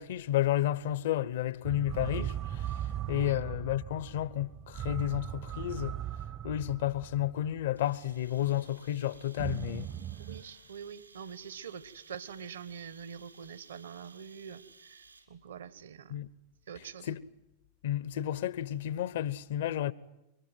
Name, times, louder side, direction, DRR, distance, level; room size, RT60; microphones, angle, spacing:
voice 1, 0.0-2.7 3.1-5.9 6.4-9.9 16.1-16.3 17.0-17.2 17.8-19.9, left 12 dB, 55° left, 1.0 m, -31 dB
sound 1, 1.6-8.1 9.4-10.4, right 11 dB, 35° right, 0.9 m, -38 dB
sound 2, 7.8-15.5, right 4 dB, 80° right, 4.3 m, -58 dB
voice 2, 10.2-16.2 16.7-17.2, right 7 dB, 65° right, 1.4 m, -45 dB
26.5 x 23.5 x 9.3 m
figure-of-eight pair, 90°, 0 cm